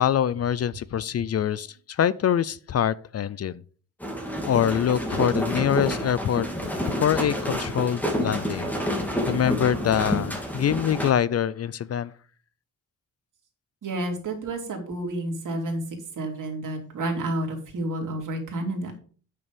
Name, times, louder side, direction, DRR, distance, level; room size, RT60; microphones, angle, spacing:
voice 1, 0.0-3.6 4.5-6.5 7.0-8.7 9.3-12.1, left 9 dB, 45° left, 0.5 m, -24 dB
sound 1, 4.0-11.1, equal, 5° left, 2.3 m, -29 dB
voice 2, 13.8-15.8 16.2-18.9, right 1 dB, 60° right, 3.1 m, -30 dB
8.9 x 6.8 x 5.2 m
cardioid pair, 125°, 34 cm